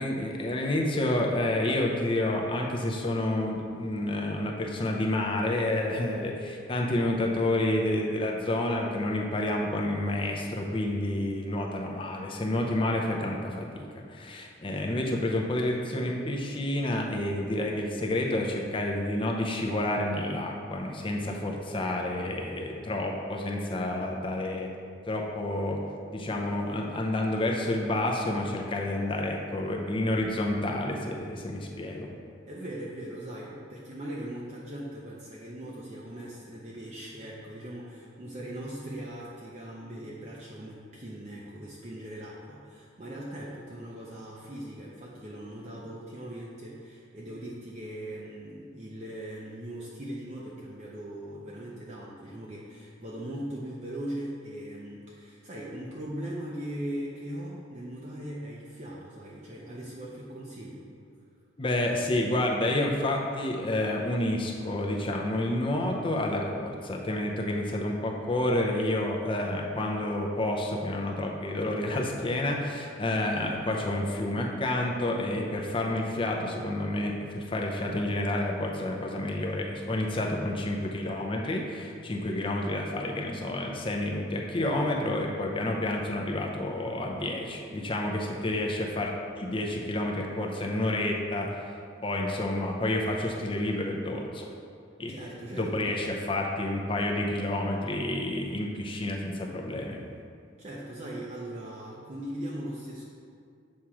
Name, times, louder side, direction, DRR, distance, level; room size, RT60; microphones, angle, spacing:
voice 1, 0.0-24.7 25.1-25.8 26.1-32.1 61.6-91.5 92.0-94.5 95.0-95.1 95.5-100.0, left 1 dB, 25° left, 0 dB, 0.5 m, -29 dB
voice 2, 32.5-60.9 95.1-96.3 100.6-103.0, right 1 dB, 35° right, -5 dB, 0.5 m, -40 dB
7.3 x 3.0 x 4.8 m, 2.3 s
head